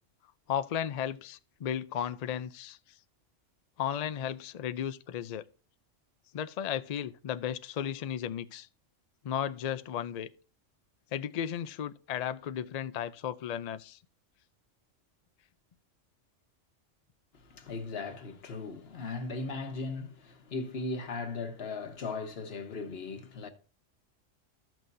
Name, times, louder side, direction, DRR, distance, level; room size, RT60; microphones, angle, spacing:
voice 1, 0.5-2.8 3.8-5.4 6.3-8.7 9.2-10.3 11.1-14.0, left 9 dB, 75° left, 0.3 m, -34 dB
voice 2, 17.4-23.5, left 3 dB, 55° left, 1.4 m, -38 dB
14.0 x 6.1 x 2.6 m
omnidirectional pair, 1.3 m